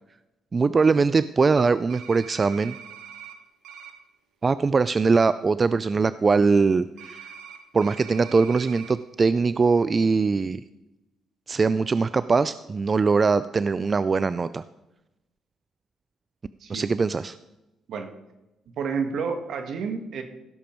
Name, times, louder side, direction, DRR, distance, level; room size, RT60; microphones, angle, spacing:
voice 1, 0.5-2.8 4.4-7.3 7.7-10.6 11.5-14.6 16.7-17.4, right 4 dB, 35° right, 14 dB, 0.3 m, -22 dB
sound 1, 1.9-3.3 3.6-3.9 7.0-8.9, right 8 dB, 85° right, 1.3 m, -43 dB
voice 2, 18.8-20.2, right 5 dB, 70° right, 7 dB, 1.5 m, -30 dB
16.5 x 7.0 x 4.5 m, 0.98 s
cardioid pair, 90°, 0 cm